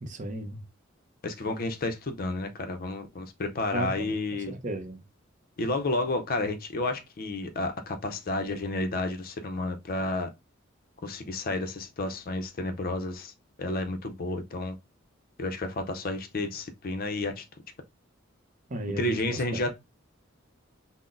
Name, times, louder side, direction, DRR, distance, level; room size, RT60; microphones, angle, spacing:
voice 1, 0.0-0.6 3.7-4.2 4.5-5.0 18.7-19.4, right 1 dB, 40° right, 0.7 m, -34 dB
voice 2, 1.2-4.5 5.6-10.3 11.0-13.3 13.6-14.8 15.4-17.4 19.0-19.7, left 2 dB, 45° left, 0.5 m, -31 dB
5.7 x 2.0 x 2.5 m
head